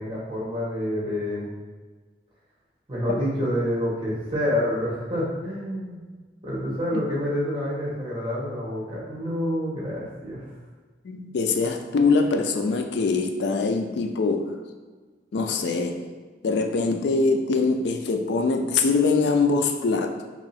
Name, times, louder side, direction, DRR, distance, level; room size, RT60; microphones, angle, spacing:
voice 1, 0.0-1.5 2.9-6.0 6.4-10.4, equal, 25° right, -6 dB, 1.0 m, -28 dB
voice 2, 11.0-14.5 15.3-16.0 16.4-20.3, left 4 dB, 65° left, 5 dB, 0.4 m, -23 dB
3.0 x 2.6 x 4.1 m, 1.4 s
head